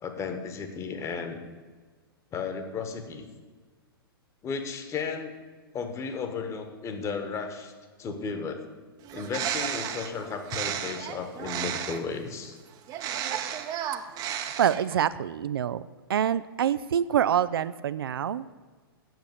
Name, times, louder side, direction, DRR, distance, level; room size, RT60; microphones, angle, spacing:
voice 1, 0.0-1.4 2.3-3.3 4.4-5.3 5.7-7.7 8.0-8.6 9.1-12.6, left 5 dB, 25° left, 7 dB, 1.3 m, -34 dB
Bird, 9.0-12.2 12.9-15.1, right 9 dB, 30° right, 0.8 m, -33 dB
voice 2, 14.3-15.8 16.1-18.5, right 9 dB, 70° right, 15 dB, 0.4 m, -26 dB
7.8 x 6.8 x 7.9 m, 1.4 s
figure-of-eight pair, 110°, 13 cm